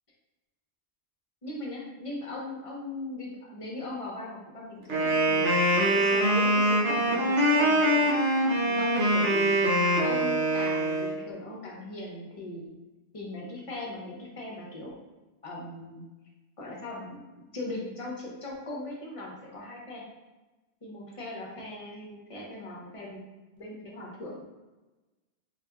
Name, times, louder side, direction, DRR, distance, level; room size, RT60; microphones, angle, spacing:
voice 1, 1.4-8.1 8.6-9.6 10.0-12.7 13.1-15.0 15.4-16.0 16.6-20.0 20.8-23.2 23.6-24.4, left 2 dB, 35° left, -2 dB, 0.7 m, -39 dB
Wind instrument woodwind instrument, 4.9-11.2, right 1 dB, 85° right, 1.1 m, -24 dB
3.8 x 2.7 x 2.3 m, 1.1 s
omnidirectional pair, 1.1 m